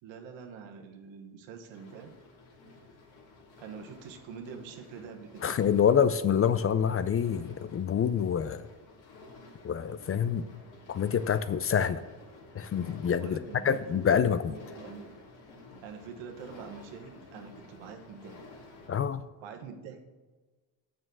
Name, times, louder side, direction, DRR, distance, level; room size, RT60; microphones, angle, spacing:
voice 1, 0.0-2.1 3.6-5.5 13.2-13.8 14.4-15.1 15.8-18.4 19.4-20.0, right 6 dB, 85° right, 4 dB, 1.4 m, -45 dB
sound 1, 1.7-18.9, left 3 dB, 85° left, 2.5 m, -52 dB
voice 2, 5.4-8.7 9.6-10.4 10.9-12.0 12.5-13.4 13.6-14.5 18.9-19.2, left 8 dB, 35° left, 13 dB, 0.4 m, -26 dB
7.0 x 6.4 x 6.1 m, 1.3 s
cardioid pair, 90°, 44 cm